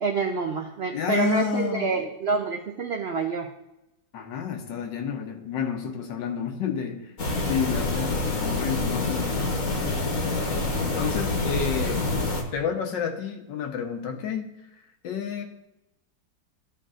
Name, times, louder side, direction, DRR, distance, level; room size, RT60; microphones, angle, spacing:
voice 1, 0.0-3.5, right 4 dB, 85° right, 2 dB, 0.5 m, -27 dB
voice 2, 0.9-2.0 4.1-7.0 7.4-9.9 10.8-14.5 15.0-15.4, left 7 dB, 85° left, 4 dB, 1.6 m, -30 dB
sound 1, 7.2-12.4, left 2 dB, 50° left, 1.5 m, -27 dB
12.5 x 4.6 x 2.5 m, 0.91 s
omnidirectional pair, 1.9 m